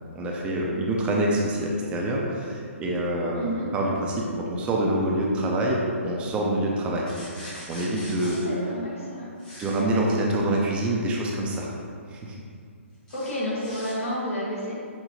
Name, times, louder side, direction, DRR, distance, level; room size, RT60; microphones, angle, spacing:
voice 1, 0.1-3.4 3.7-7.1 7.7-8.4 9.6-11.7 12.1-12.3, right 1 dB, 15° right, -2 dB, 0.4 m, -26 dB
voice 2, 3.3-3.7 8.4-9.3 13.1-14.9, equal, 75° left, -6 dB, 1.2 m, -30 dB
sound 1, 7.1-8.5 9.4-9.8 13.1-13.9, equal, 10° left, 0.7 m, -42 dB
5.4 x 2.1 x 2.8 m, 2.3 s
figure-of-eight pair, 130°, 7 cm